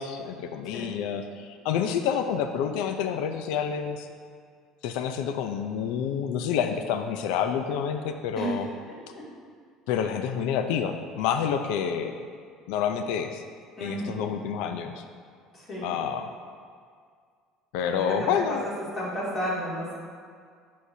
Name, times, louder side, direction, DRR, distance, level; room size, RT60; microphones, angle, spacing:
voice 1, 0.0-4.1 4.8-8.7 9.9-12.2 12.7-13.4 13.8-15.0 15.8-16.3 17.7-18.6, left 8 dB, 70° left, 7 dB, 0.5 m, -28 dB
voice 2, 13.8-14.2 15.5-16.0 17.8-18.3 18.9-20.0, equal, 25° left, -7 dB, 2.4 m, -32 dB
14.0 x 6.5 x 2.8 m, 2.1 s
cardioid pair, 175°, 0 cm